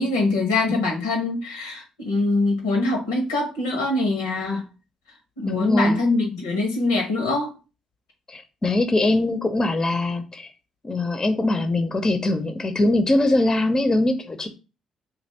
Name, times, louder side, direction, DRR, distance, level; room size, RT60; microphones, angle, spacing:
voice 1, 0.0-4.6 5.4-7.5, left 2 dB, 85° left, 1 dB, 1.1 m, -23 dB
voice 2, 5.5-6.0 8.3-10.5 10.8-14.5, left 2 dB, 30° left, 6 dB, 0.7 m, -22 dB
2.9 x 2.5 x 4.1 m, 0.30 s
hypercardioid pair, 45°, 2 cm